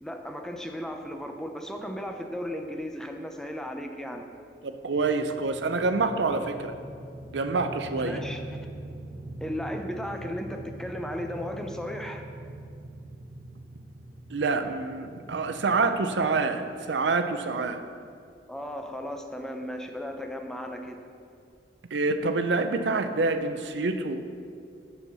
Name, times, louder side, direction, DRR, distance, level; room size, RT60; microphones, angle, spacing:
voice 1, 0.0-4.3 8.0-8.4 9.4-12.2 18.5-21.0, equal, 5° left, 4 dB, 0.5 m, -35 dB
voice 2, 4.6-6.7 7.3-8.2 14.3-17.8 21.9-24.2, right 3 dB, 80° right, 8 dB, 0.6 m, -27 dB
sound 1, 4.9-17.2, right 1 dB, 20° right, 0.9 m, -43 dB
7.1 x 6.9 x 6.0 m, 2.3 s
head